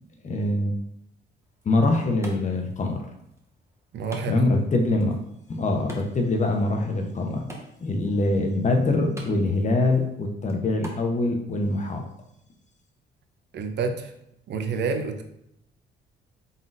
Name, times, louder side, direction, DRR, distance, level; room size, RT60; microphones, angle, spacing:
voice 1, 0.2-0.8 1.6-3.1 4.3-5.2 5.5-7.4 7.8-12.0, left 2 dB, 35° left, 3 dB, 0.7 m, -24 dB
Wood, 1.4-11.4, right 1 dB, 15° right, 0.9 m, -47 dB
voice 2, 3.9-4.4 13.5-14.1 14.5-15.2, right 4 dB, 60° right, 6 dB, 0.6 m, -28 dB
3.9 x 3.7 x 2.5 m, 0.78 s
cardioid pair, 90°, 20 cm